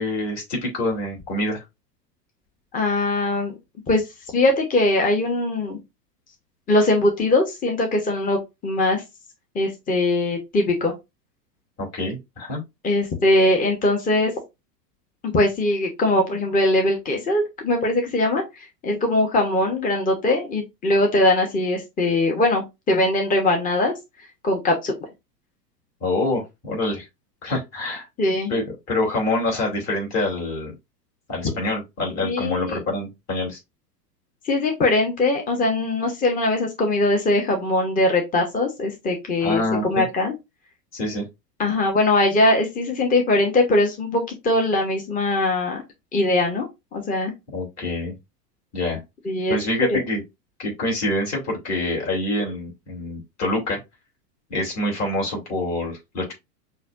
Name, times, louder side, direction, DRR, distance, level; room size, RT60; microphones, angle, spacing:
voice 1, 0.0-1.6 11.8-12.6 26.0-27.0 27.4-28.1 28.5-30.7 31.3-33.6 39.4-40.1 40.9-41.2 47.5-48.1 48.7-49.0 49.5-50.2 50.6-53.8 54.5-56.3, left 1 dB, 30° left, 2.9 m, -26 dB
voice 2, 2.7-3.5 3.9-4.0 4.3-5.8 6.7-9.0 9.5-10.9 12.8-14.3 15.2-23.9 24.4-24.9 28.2-28.6 32.2-32.8 34.4-40.3 41.6-45.8 46.1-46.7 46.9-47.3 49.2-49.6 49.9-50.0, left 2 dB, 15° left, 1.1 m, -21 dB
6.2 x 2.7 x 2.5 m
hypercardioid pair, 100°, 49 cm